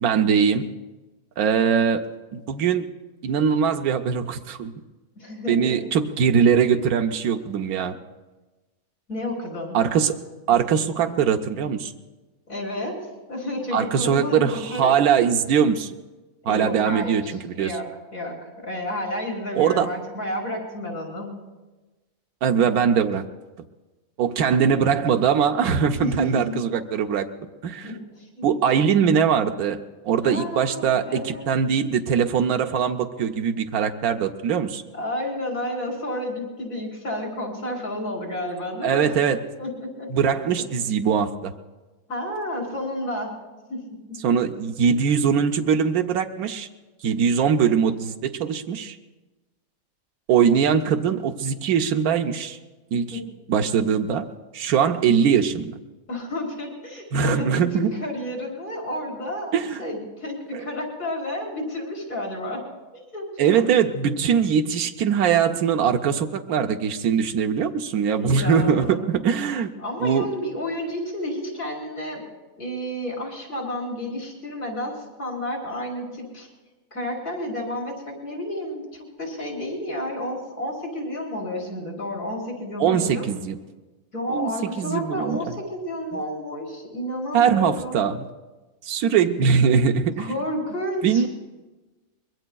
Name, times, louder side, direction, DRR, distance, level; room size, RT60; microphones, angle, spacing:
voice 1, 0.0-0.6 1.4-2.8 3.2-4.7 5.5-8.0 9.7-10.2 10.5-11.9 13.7-15.9 16.4-17.7 19.6-19.9 22.4-23.2 24.2-27.3 27.6-27.9 28.4-29.8 30.0-34.8 38.8-39.4 40.1-41.5 44.2-46.7 47.0-49.0 50.3-52.6 52.9-53.2 53.5-54.3 54.5-55.7 57.1-57.9 59.5-59.8 60.5-60.6 63.4-69.7 70.0-70.3 82.8-83.6 84.3-84.5 84.8-85.6 87.3-88.2 88.8-90.3 91.0-91.3, right 7 dB, 85° right, 6 dB, 1.2 m, -21 dB
voice 2, 5.2-5.8 9.1-9.8 12.5-13.0 13.3-14.9 16.4-17.8 18.1-21.3 26.0-26.6 27.8-28.5 30.2-31.5 34.9-39.0 39.6-40.5 42.1-43.3 43.7-44.2 53.1-53.2 56.1-62.6 63.1-63.7 68.2-69.2 69.8-72.3 72.6-76.5 76.9-83.2 84.1-88.0 90.2-91.3, left 1 dB, 70° left, -1 dB, 4.3 m, -31 dB
24.0 x 21.5 x 2.3 m, 1.2 s
omnidirectional pair, 1.5 m